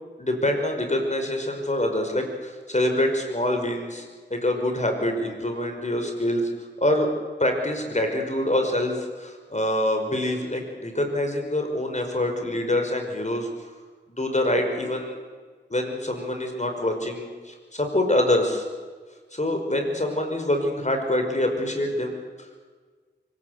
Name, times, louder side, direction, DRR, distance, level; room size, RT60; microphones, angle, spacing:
voice 1, 0.2-4.0 4.3-6.5 6.8-7.1 7.4-13.5 14.2-15.2 15.7-18.6 19.3-22.2, left 1 dB, 40° left, 4 dB, 5.4 m, -25 dB
24.5 x 18.0 x 8.4 m, 1.5 s
cardioid pair, 40°, 19 cm